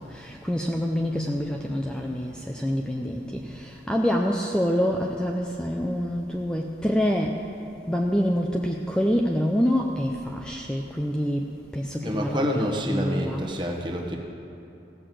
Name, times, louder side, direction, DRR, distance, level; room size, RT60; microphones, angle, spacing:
voice 1, 0.0-7.4 7.9-13.4, equal, 5° left, 1 dB, 0.5 m, -26 dB
voice 2, 12.0-14.2, equal, 25° right, 0 dB, 1.2 m, -28 dB
16.0 x 6.6 x 7.6 m, 2.8 s
head